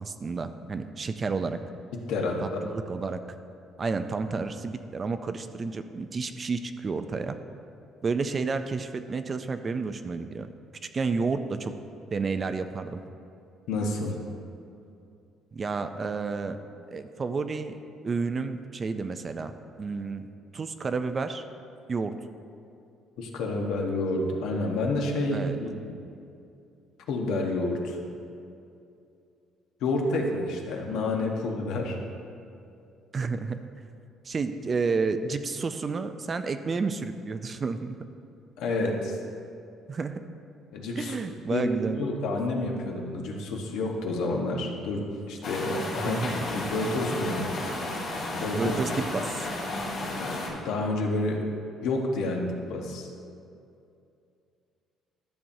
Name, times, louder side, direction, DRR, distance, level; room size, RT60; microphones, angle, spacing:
voice 1, 0.0-1.6 2.4-3.4 3.8-7.4 8.0-10.5 10.9-11.7 12.1-13.0 15.5-16.6 16.9-17.7 18.0-19.5 19.8-20.2 20.5-21.4 21.9-22.1 25.3-25.6 33.1-33.6 34.2-38.0 39.9-40.2 41.0-42.0 46.0-46.5 48.6-49.5, right 4 dB, 25° right, 9 dB, 0.3 m, -30 dB
voice 2, 1.9-2.4 13.7-14.2 23.2-25.9 27.1-28.0 29.8-32.0 38.6-39.2 40.7-41.1 41.5-41.7 41.9-46.2 46.5-47.5 48.4-48.8 50.1-50.4 50.6-51.4 51.8-53.1, left 2 dB, 75° left, 1 dB, 1.0 m, -29 dB
sound 1, 45.4-50.5, left 2 dB, 50° left, 1.9 m, -33 dB
12.5 x 7.0 x 2.7 m, 2.6 s
cardioid pair, 160°, 0 cm